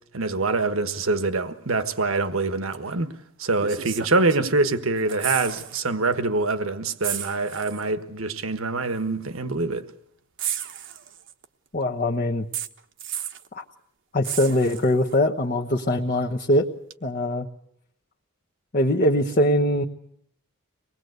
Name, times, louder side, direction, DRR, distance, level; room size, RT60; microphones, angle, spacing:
voice 1, 0.1-3.1 3.4-9.9, right 3 dB, 75° right, 1.4 m, -25 dB
sound 1, 2.7-2.9 3.6-4.7 5.0-5.8 6.1-6.3 7.0-7.9 8.9-9.0 10.4-11.4 12.5-13.5 14.2-15.2 16.9-17.0, right 10 dB, 60° right, 1.1 m, -33 dB
voice 2, 11.7-12.4 13.5-13.6 14.1-16.7 17.0-17.5 18.7-19.8, left 1 dB, 45° left, 1.0 m, -22 dB
25.0 x 19.5 x 8.0 m
head